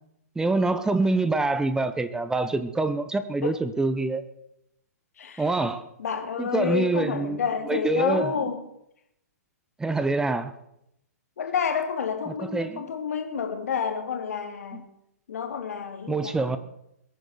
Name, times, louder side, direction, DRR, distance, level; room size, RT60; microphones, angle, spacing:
voice 1, 0.4-4.3 5.4-5.9 6.4-7.4 7.7-8.3 9.8-10.5 12.3-12.8 14.7-14.8 16.1-16.6, right 3 dB, 5° right, 12 dB, 0.9 m, -25 dB
voice 2, 5.2-5.5 6.0-8.6 11.4-14.9 15.3-16.6, left 6 dB, 65° left, 6 dB, 2.8 m, -29 dB
21.5 x 9.1 x 6.8 m, 0.79 s
figure-of-eight pair, 120°, 9 cm